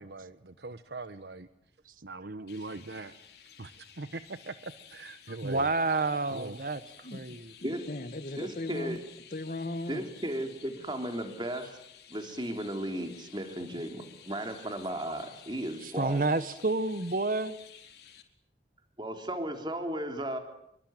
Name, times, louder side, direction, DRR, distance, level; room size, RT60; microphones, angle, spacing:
voice 1, 0.0-1.5 2.0-3.1 3.6-5.7 6.3-6.6, right 3 dB, 70° right, 11 dB, 1.2 m, -42 dB
Chirp tweet, 2.5-18.2, left 9 dB, 65° left, 4.3 m, -53 dB
voice 2, 5.4-6.8 7.1-7.5 15.8-17.5, right 3 dB, 50° right, 14 dB, 1.2 m, -29 dB
voice 3, 7.6-9.0 9.3-10.1, left 2 dB, 45° left, 12 dB, 1.6 m, -37 dB
voice 4, 8.4-9.0 9.9-11.8 12.1-16.3 19.0-20.4, right 1 dB, 25° right, 5 dB, 3.6 m, -35 dB
27.0 x 24.0 x 9.1 m, 0.73 s
head